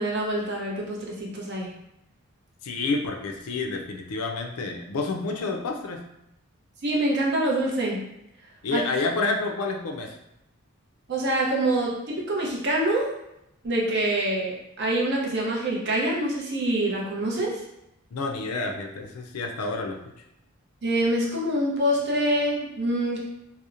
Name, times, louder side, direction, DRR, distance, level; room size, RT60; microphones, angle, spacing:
voice 1, 0.0-1.7 6.8-8.0 8.7-8.8 11.1-13.1 13.6-17.6 20.8-23.2, right 1 dB, 50° right, -3 dB, 0.6 m, -25 dB
voice 2, 2.6-6.0 8.6-10.1 18.1-20.0, left 3 dB, 85° left, 3 dB, 0.4 m, -29 dB
2.7 x 2.0 x 2.4 m, 0.84 s
head